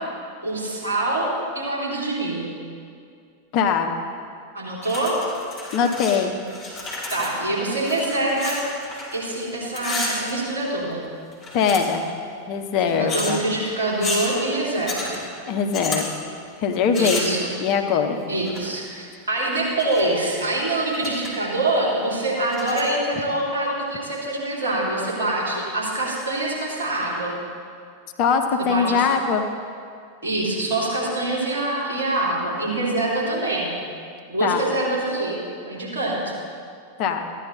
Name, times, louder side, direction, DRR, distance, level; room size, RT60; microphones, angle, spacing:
voice 1, 0.4-2.5 4.5-5.1 7.1-8.6 9.1-11.0 12.9-15.2 17.0-17.5 18.3-27.4 28.6-29.0 30.2-33.8 34.3-35.4 35.7-36.3, right 2 dB, 65° right, -6 dB, 3.7 m, -25 dB
voice 2, 3.5-3.9 5.7-6.3 11.5-12.0 12.5-13.4 15.5-16.3 16.6-18.2 28.2-29.4 34.4-34.6 37.0-37.2, left 6 dB, 40° left, 5 dB, 0.9 m, -22 dB
sound 1, 4.8-6.2 6.4-9.4 9.6-10.9 11.3-12.1 13.1-13.4 14.0-14.3 14.9-15.2 15.7-16.1 16.9-17.4 18.4-18.8 19.5-20.2 20.5-20.6 20.9-21.3 21.7-21.8 22.4-22.9, left 2 dB, 20° left, 3.3 m, -31 dB
15.0 x 10.0 x 4.3 m, 2.3 s
figure-of-eight pair, 90°, 0 cm